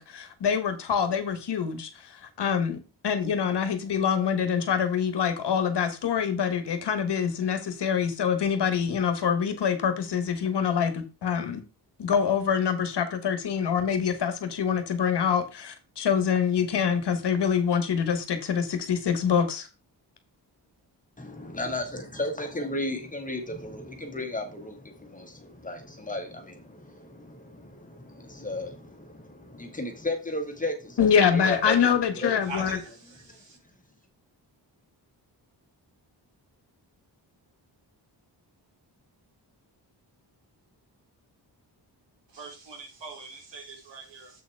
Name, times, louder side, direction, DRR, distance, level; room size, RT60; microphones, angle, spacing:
voice 1, 0.0-2.8 3.0-11.6 12.0-19.7 31.0-32.8, left 7 dB, 70° left, 1.5 m, -25 dB
voice 2, 21.2-32.3 33.3-33.4, left 2 dB, 20° left, 1.7 m, -34 dB
voice 3, 32.4-32.9 33.3-33.6 42.3-44.3, right 3 dB, 80° right, 3.3 m, -42 dB
7.7 x 6.7 x 3.5 m
wide cardioid pair, 155°, 42 cm